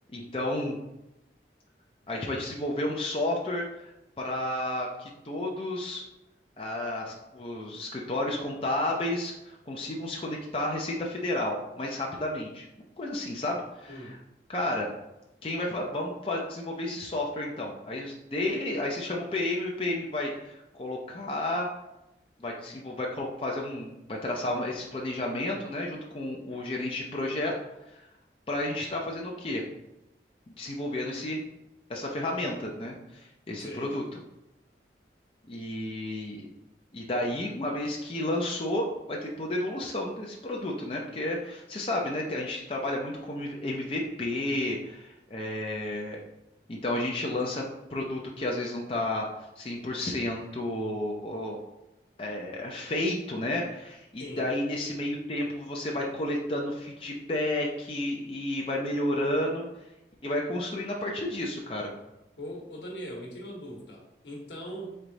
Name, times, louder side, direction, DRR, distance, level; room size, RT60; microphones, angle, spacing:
voice 1, 0.1-0.8 2.1-3.7 4.2-6.0 6.6-12.7 13.0-14.2 14.5-14.9 15.4-21.7 22.4-27.5 28.5-29.6 30.5-31.4 31.9-34.0 35.5-36.5 36.9-46.2 46.7-51.6 52.2-59.7 60.2-61.9, left 1 dB, 30° left, -1 dB, 0.5 m, -31 dB
voice 2, 13.9-14.2 33.6-34.0 54.2-54.5 62.4-65.0, equal, 90° left, -1 dB, 1.1 m, -40 dB
3.6 x 3.3 x 3.9 m, 0.92 s
head